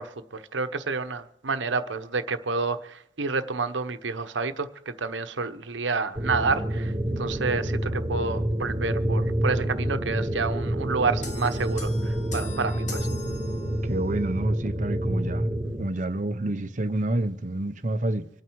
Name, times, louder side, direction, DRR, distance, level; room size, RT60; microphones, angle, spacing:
voice 1, 0.0-13.1, right 4 dB, 85° right, 1.1 m, -29 dB
sound 1, 6.1-15.8, right 1 dB, 25° right, 1.1 m, -28 dB
sound 2, 11.2-14.1, left 4 dB, 40° left, 1.6 m, -41 dB
voice 2, 13.8-15.5 15.8-18.3, right 1 dB, 40° right, 0.8 m, -28 dB
26.0 x 9.2 x 4.7 m
head